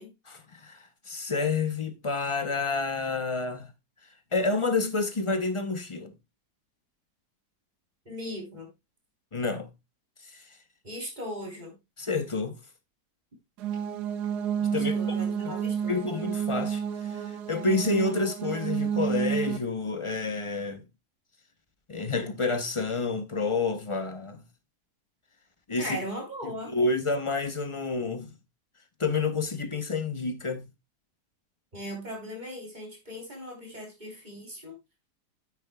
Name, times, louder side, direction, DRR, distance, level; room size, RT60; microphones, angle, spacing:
voice 1, 0.3-3.7 4.3-6.1 9.3-9.7 10.3-10.4 12.0-12.6 14.7-15.2 15.4-15.5 15.9-20.8 21.9-24.4 25.7-26.0 26.4-28.3 29.0-30.7, left 3 dB, 35° left, 0.4 m, -29 dB
voice 2, 8.1-8.7 10.8-11.8 14.7-16.0 25.8-26.7 31.7-34.7, equal, 25° right, 3.6 m, -38 dB
sound 1, 13.6-19.6, right 8 dB, 85° right, 1.3 m, -30 dB
9.3 x 8.9 x 2.2 m
omnidirectional pair, 1.7 m